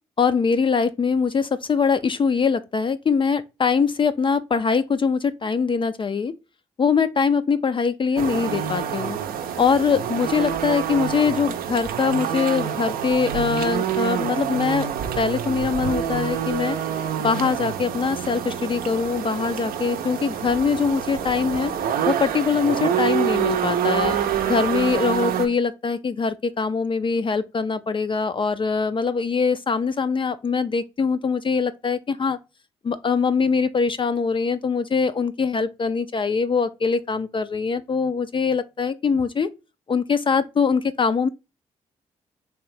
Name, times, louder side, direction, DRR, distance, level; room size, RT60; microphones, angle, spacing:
voice 1, 0.2-6.3 6.8-9.2 9.6-14.9 15.2-16.8 17.2-21.7 22.1-24.2 24.5-32.4 32.8-39.5 39.9-41.3, left 5 dB, 30° left, 0.4 m, -22 dB
sound 1, 8.2-25.5, right 9 dB, 65° right, 0.5 m, -26 dB
3.3 x 2.9 x 3.1 m
hypercardioid pair, 40°, 16 cm